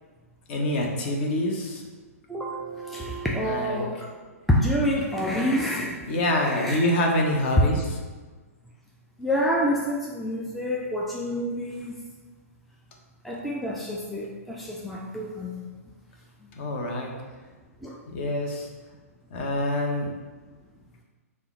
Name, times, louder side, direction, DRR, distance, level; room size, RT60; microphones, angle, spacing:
voice 1, 0.5-1.8 3.4-3.9 6.1-8.0 16.6-17.1 18.1-18.7 19.3-20.1, left 1 dB, 45° left, 1 dB, 0.7 m, -26 dB
voice 2, 2.3-4.0 4.5-6.0 6.4-6.8 9.2-12.0 13.2-15.7 17.8-18.0, equal, ahead, -3 dB, 0.3 m, -27 dB
3.6 x 2.1 x 4.2 m, 1.4 s
figure-of-eight pair, 115°, 8 cm